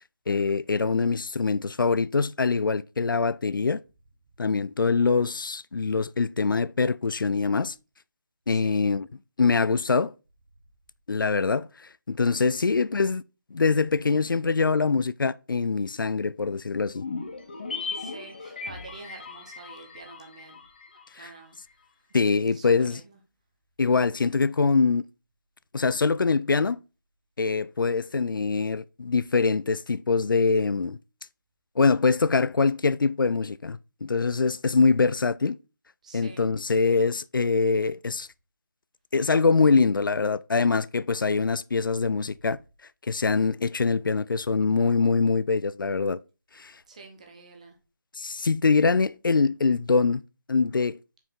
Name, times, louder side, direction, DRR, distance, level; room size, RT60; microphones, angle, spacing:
voice 1, 0.3-3.8 4.4-7.7 8.5-9.1 9.4-10.1 11.1-11.7 12.1-13.2 13.5-17.0 21.2-21.3 22.1-23.0 23.8-25.0 25.7-26.8 27.4-31.0 31.8-35.6 36.1-38.3 39.1-42.6 43.0-46.2 46.6-46.7 48.1-50.2 50.5-51.0, left 4 dB, 85° left, 0.4 m, -24 dB
voice 2, 8.5-8.8 17.9-20.6 21.2-21.6 22.5-23.2 36.0-36.5 46.9-47.8, right 4 dB, 20° right, 0.8 m, -47 dB
sound 1, 16.9-21.4 21.7-21.8, left 4 dB, 30° left, 0.7 m, -38 dB
5.5 x 4.7 x 3.7 m
figure-of-eight pair, 170°, 11 cm